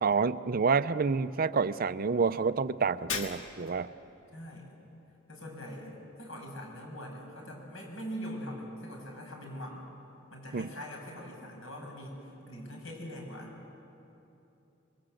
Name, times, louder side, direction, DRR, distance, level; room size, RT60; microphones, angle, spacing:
voice 1, 0.0-3.9 10.5-10.7, right 5 dB, 45° right, 14 dB, 0.5 m, -28 dB
Shatter, 3.1-3.9, left 5 dB, 75° left, 1.9 m, -37 dB
voice 2, 4.3-4.8 5.3-9.9 10.3-13.5, equal, 90° left, 0 dB, 6.8 m, -42 dB
26.5 x 22.5 x 7.8 m, 2.9 s
head